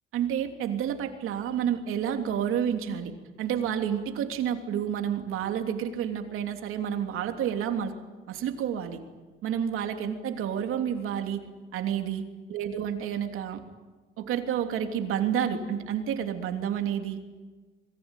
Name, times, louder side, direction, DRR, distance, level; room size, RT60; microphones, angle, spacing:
voice 1, 0.1-7.9 8.3-9.0 9.4-11.4 11.7-13.6 14.2-17.2, right 9 dB, 85° right, 5 dB, 3.1 m, -30 dB
27.0 x 22.0 x 9.1 m, 1.4 s
cardioid pair, 180°, 21 cm